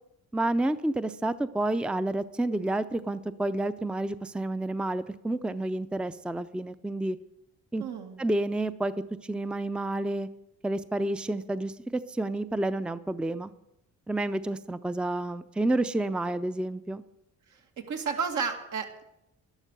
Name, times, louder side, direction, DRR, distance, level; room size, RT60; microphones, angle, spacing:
voice 1, 0.3-7.2 7.7-7.8 8.2-8.9 9.2-10.3 10.6-13.5 14.1-17.0, right 2 dB, 5° right, 12 dB, 0.5 m, -29 dB
voice 2, 7.8-8.2 17.5-19.0, right 6 dB, 75° right, 3 dB, 2.4 m, -32 dB
12.5 x 11.5 x 6.7 m, 0.84 s
cardioid pair, 90°, 30 cm